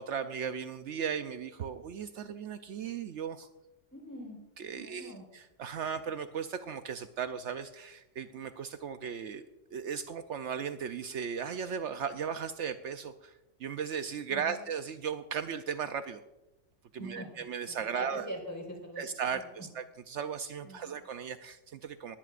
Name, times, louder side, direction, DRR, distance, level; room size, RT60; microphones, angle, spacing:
voice 1, 0.0-3.5 4.6-16.2 16.9-18.3 19.0-22.2, right 7 dB, 70° right, 9 dB, 0.9 m, -37 dB
voice 2, 3.9-4.4 4.7-5.2 14.3-14.6 17.0-19.0 19.3-19.5 20.6-21.0, equal, 15° left, -1 dB, 4.3 m, -43 dB
20.0 x 15.0 x 2.5 m, 0.94 s
omnidirectional pair, 1.3 m